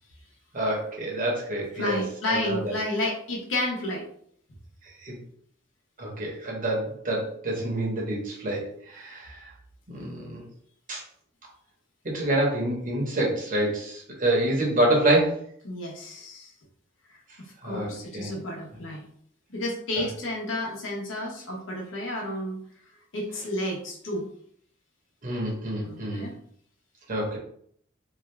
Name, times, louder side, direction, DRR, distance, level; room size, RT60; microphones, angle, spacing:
voice 1, 0.5-2.0 2.3-2.7 5.0-5.2 6.0-8.6 8.9-9.4 9.9-10.4 10.9-11.0 12.0-15.4 17.6-18.3 25.2-26.3 27.1-27.4, right 1 dB, 45° right, -2 dB, 1.0 m, -27 dB
voice 2, 1.7-4.1 15.6-16.5 17.4-19.1 19.5-22.6 23.1-24.3 25.8-26.3, left 1 dB, 85° left, -1 dB, 0.9 m, -31 dB
2.8 x 2.4 x 3.2 m, 0.63 s
head